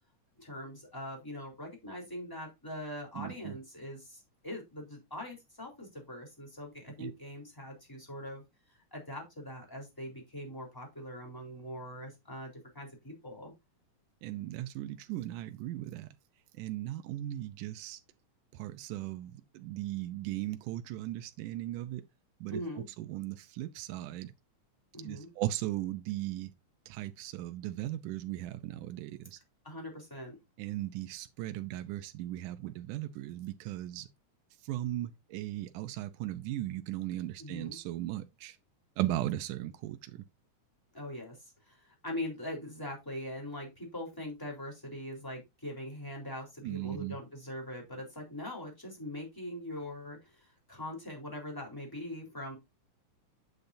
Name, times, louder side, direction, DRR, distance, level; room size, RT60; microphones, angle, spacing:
voice 1, 0.4-8.4 8.9-13.5 22.5-22.8 24.9-25.3 29.6-30.4 37.4-37.8 40.9-41.4 41.7-52.6, left 1 dB, 5° left, 3.5 m, -42 dB
voice 2, 3.2-3.5 7.0-7.1 14.2-16.1 16.6-18.0 18.5-22.0 22.4-24.3 25.0-26.5 26.9-29.4 30.6-34.1 34.6-38.6 39.0-40.2 46.6-47.2, right 14 dB, 85° right, 2.2 m, -37 dB
8.5 x 7.9 x 2.6 m
omnidirectional pair, 3.6 m